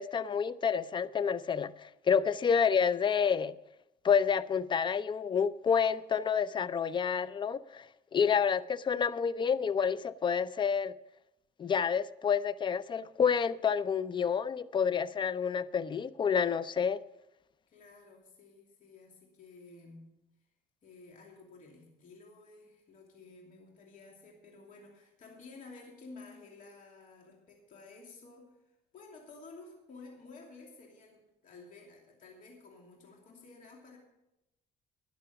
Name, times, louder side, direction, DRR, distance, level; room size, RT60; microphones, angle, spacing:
voice 1, 0.0-3.5 4.0-7.9 8.1-10.9 11.6-17.0, left 7 dB, 30° left, 0.5 m, -29 dB
voice 2, 8.2-8.6 17.7-20.1 20.8-34.0, left 3 dB, 50° left, 2.8 m, -53 dB
12.0 x 10.5 x 5.8 m
cardioid pair, 110°, 17 cm